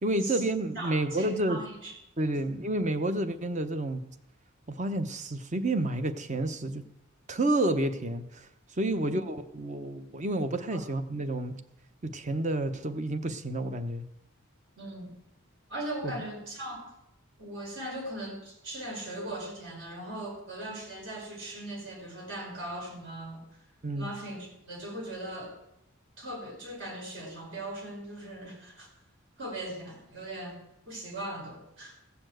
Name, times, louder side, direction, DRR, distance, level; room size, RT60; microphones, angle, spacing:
voice 1, 0.0-1.6 2.2-4.0 4.7-6.8 7.3-8.5 8.8-11.6 12.0-14.0 16.0-16.1 23.8-24.1, right 1 dB, 35° right, 0.8 m, -30 dB
voice 2, 0.7-1.9 2.2-2.4 8.9-9.2 10.7-10.8 14.8-15.1 15.7-16.8 17.4-23.4 23.9-25.5 26.2-28.9 29.4-30.6 30.9-32.0, right 1 dB, 60° right, 4.7 m, -39 dB
15.5 x 7.1 x 7.8 m
head